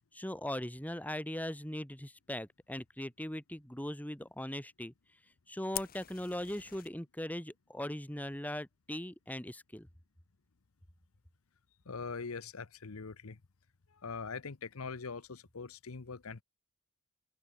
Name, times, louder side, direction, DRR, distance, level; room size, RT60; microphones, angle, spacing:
voice 1, 0.1-4.9 5.5-9.9, left 1 dB, 10° left, 2.0 m, -40 dB
Fire, 5.7-6.9, left 13 dB, 45° left, 1.7 m, -43 dB
voice 2, 11.8-13.4 13.9-16.4, left 5 dB, 80° left, 0.9 m, -42 dB
head